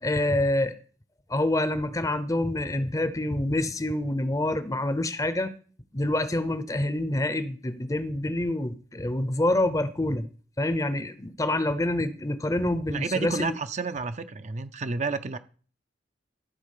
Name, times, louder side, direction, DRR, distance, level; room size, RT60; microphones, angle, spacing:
voice 1, 0.0-0.7 1.3-5.5 5.9-10.3 10.6-13.5, left 1 dB, 20° left, 0.7 m, -27 dB
voice 2, 12.9-15.4, right 4 dB, 40° right, 0.6 m, -30 dB
14.0 x 4.8 x 6.6 m
head